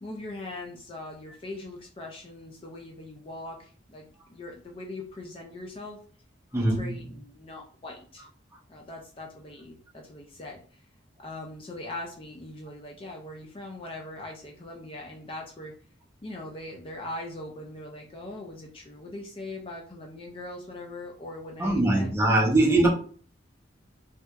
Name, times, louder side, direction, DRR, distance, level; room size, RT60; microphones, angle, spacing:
voice 1, 0.0-6.0 6.6-8.3 8.7-10.9 11.2-15.7 16.2-22.1 22.4-22.9, left 2 dB, 30° left, 0 dB, 0.4 m, -41 dB
voice 2, 6.5-7.0 21.6-22.9, right 2 dB, 15° right, -2 dB, 0.7 m, -22 dB
3.2 x 2.8 x 2.3 m, 0.43 s
head